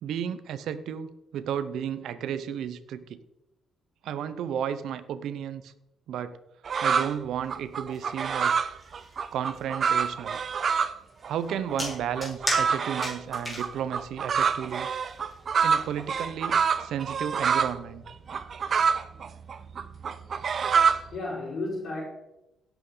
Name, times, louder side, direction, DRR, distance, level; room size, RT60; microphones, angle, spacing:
voice 1, 0.0-3.2 4.0-5.7 6.1-6.4 6.8-8.7 9.3-10.4 11.3-14.9 15.6-18.0, right 9 dB, 75° right, 13 dB, 0.9 m, -33 dB
sound 1, 6.6-7.1 7.5-11.0 11.2-17.8 18.1-21.2, right 6 dB, 50° right, 0.7 m, -26 dB
sound 2, 7.4-16.2, left 1 dB, 15° left, 4.2 m, -38 dB
voice 2, 20.8-22.1, left 2 dB, 55° left, -9 dB, 5.1 m, -34 dB
17.0 x 8.1 x 4.0 m, 0.91 s
cardioid pair, 90°, 0 cm